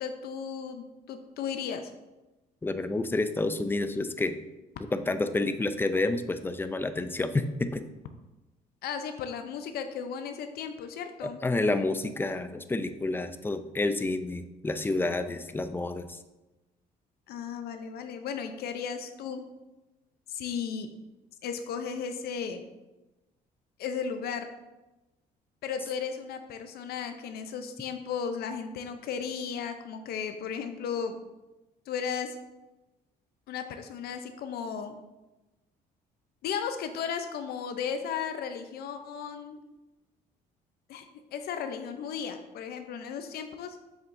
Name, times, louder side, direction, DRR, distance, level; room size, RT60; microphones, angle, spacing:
voice 1, 0.0-1.9 8.8-11.4 17.3-19.4 20.3-20.9 21.4-22.7 23.8-24.5 25.6-31.2 31.9-32.4 33.5-35.0 36.4-39.6 40.9-41.1 41.3-43.8, left 7 dB, 70° left, 7 dB, 0.6 m, -35 dB
voice 2, 2.6-4.4 4.9-7.8 11.2-16.2, left 2 dB, 10° left, 9 dB, 0.4 m, -29 dB
7.3 x 6.4 x 2.6 m, 1.0 s
cardioid pair, 110°, 17 cm